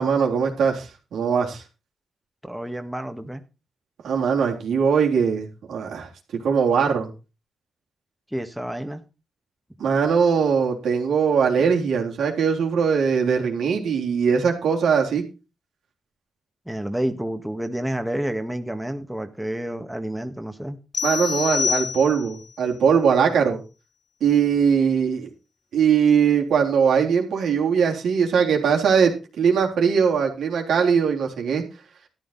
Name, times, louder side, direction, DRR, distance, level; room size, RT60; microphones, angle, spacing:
voice 1, 0.0-1.6 4.0-6.1 6.4-7.1 9.8-15.2 21.0-23.6 24.2-25.3 25.7-31.6, right 6 dB, 80° right, 3.6 m, -21 dB
voice 2, 2.4-3.4 8.3-9.0 16.7-20.8, right 1 dB, 5° right, 1.9 m, -29 dB
sound 1, 20.9-22.5, left 7 dB, 60° left, 0.5 m, -26 dB
13.5 x 10.5 x 4.3 m
supercardioid pair, 55°, 0 cm